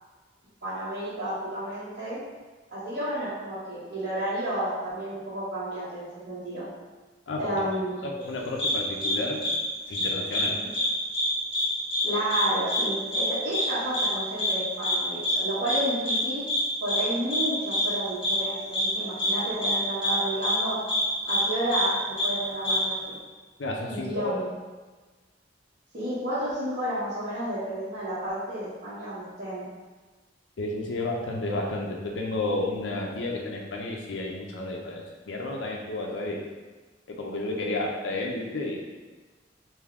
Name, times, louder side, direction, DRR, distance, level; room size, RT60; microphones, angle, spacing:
voice 1, 0.6-2.2 2.7-6.6 7.4-8.0 12.0-16.4 16.8-20.8 21.3-23.2 23.8-24.5 25.9-29.7 37.6-37.7, right 1 dB, 55° right, -13 dB, 1.3 m, -31 dB
voice 2, 8.0-9.4 9.9-10.6 23.6-24.4 30.6-36.5 37.1-38.8, left 2 dB, 70° left, -1 dB, 0.5 m, -31 dB
sound 1, 8.6-8.7 9.0-9.1 9.4-9.5 9.9-10.5 10.7-10.9 11.1-11.7 11.9-12.0 12.3-12.4 12.7-12.8 13.1-13.3 13.5-13.7 13.9-14.1 14.4-14.5 14.8-15.0 15.2-15.4 15.7-15.8 16.1-16.2 16.5-16.6 16.9-17.0 17.3-17.4 17.7-17.8 18.2-18.4 18.7-18.9 19.2-19.3 19.6-19.7 20.0-20.2 20.4-20.6 20.9-21.0 21.3-21.4 21.7-21.8 22.2-22.3 22.6-22.8, left 1 dB, 30° left, 1.0 m, -26 dB
3.6 x 2.7 x 3.5 m, 1.3 s
head